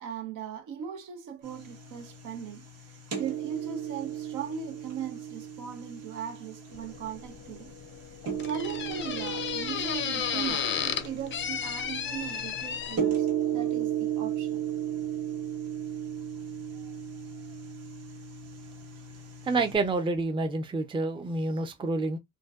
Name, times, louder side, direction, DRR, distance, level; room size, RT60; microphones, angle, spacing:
voice 1, 0.0-2.7 3.2-7.7 8.5-14.6, right 8 dB, 80° right, 0.7 m, -39 dB
sound 1, 1.4-19.8, right 9 dB, 55° right, 1.2 m, -35 dB
sound 2, 6.7-13.0, left 8 dB, 40° left, 0.4 m, -33 dB
voice 2, 19.5-22.2, right 3 dB, 15° right, 0.5 m, -28 dB
2.5 x 2.1 x 2.3 m
cardioid pair, 90°, 30 cm